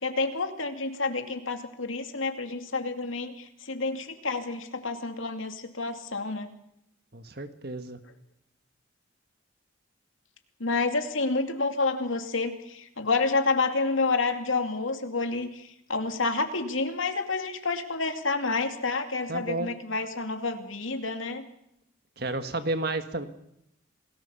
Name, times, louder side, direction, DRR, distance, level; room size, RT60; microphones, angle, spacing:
voice 1, 0.0-6.5 10.6-21.5, left 3 dB, 85° left, 6 dB, 2.6 m, -29 dB
voice 2, 7.1-8.0 19.3-19.7 22.2-23.3, right 2 dB, 50° right, 9 dB, 1.7 m, -31 dB
27.5 x 19.0 x 7.1 m, 0.79 s
head